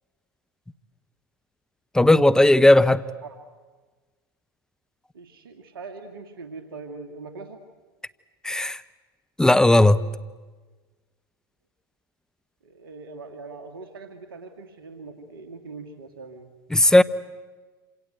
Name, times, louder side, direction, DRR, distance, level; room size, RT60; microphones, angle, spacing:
voice 1, 1.9-3.0 8.4-8.8 9.4-10.0 16.7-17.0, left 1 dB, 5° left, 14 dB, 0.9 m, -16 dB
voice 2, 5.1-7.6 12.6-16.5, right 3 dB, 80° right, 7 dB, 2.1 m, -41 dB
27.5 x 26.5 x 8.1 m, 1.3 s
hypercardioid pair, 90°, 12 cm